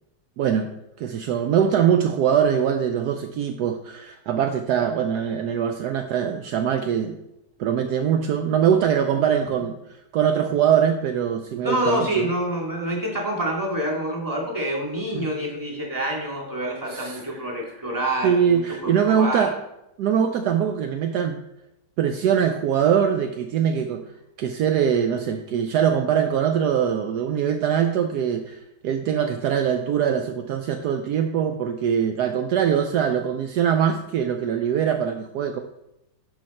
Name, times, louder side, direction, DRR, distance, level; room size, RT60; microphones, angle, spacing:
voice 1, 0.4-0.7 1.0-7.2 7.6-9.8 10.1-12.3 15.1-15.3 16.9-17.6 18.2-19.6 20.0-21.4 22.0-24.0 24.4-35.6, right 8 dB, 75° right, 6 dB, 1.1 m, -22 dB
voice 2, 11.6-19.5, right 1 dB, 10° right, -4 dB, 2.3 m, -27 dB
11.5 x 5.1 x 4.3 m, 0.87 s
omnidirectional pair, 1.9 m